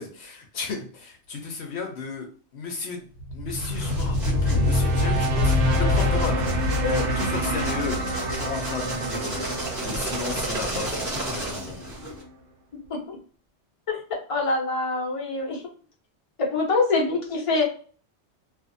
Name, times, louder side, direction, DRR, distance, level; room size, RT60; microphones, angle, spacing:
voice 1, 0.0-3.0 3.3-11.8, left 4 dB, 70° left, 2 dB, 0.8 m, -34 dB
sound 1, 3.2-12.3, left 1 dB, 80° right, 1.0 m, -26 dB
sound 2, 3.5-12.2, right 1 dB, 40° right, 1.0 m, -34 dB
voice 2, 14.3-15.6 16.4-17.6, left 3 dB, 35° left, -2 dB, 0.7 m, -24 dB
2.5 x 2.4 x 2.5 m, 0.41 s
omnidirectional pair, 1.2 m